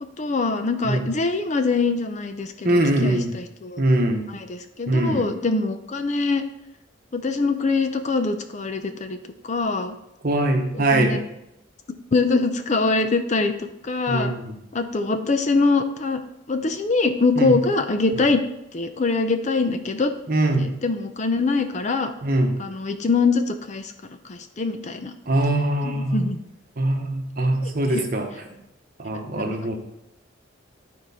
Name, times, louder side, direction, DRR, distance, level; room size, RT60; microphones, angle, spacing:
voice 1, 0.2-3.8 4.3-6.4 7.1-9.2 9.4-9.9 10.7-11.2 12.1-14.3 14.7-16.2 16.5-18.4 18.7-20.1 20.6-22.1 22.6-23.9 24.3-25.1 26.1-26.4 27.6-28.1 29.3-29.5, left 3 dB, 35° left, 8 dB, 0.5 m, -23 dB
voice 2, 2.6-3.3 3.8-4.2 4.9-5.3 10.2-11.2 14.1-14.5 17.4-17.5 18.1-18.2 20.3-20.7 22.2-22.5 25.3-26.3 26.8-28.3 29.0-29.8, right 1 dB, 45° right, 3 dB, 1.1 m, -22 dB
11.0 x 4.7 x 4.2 m, 0.83 s
head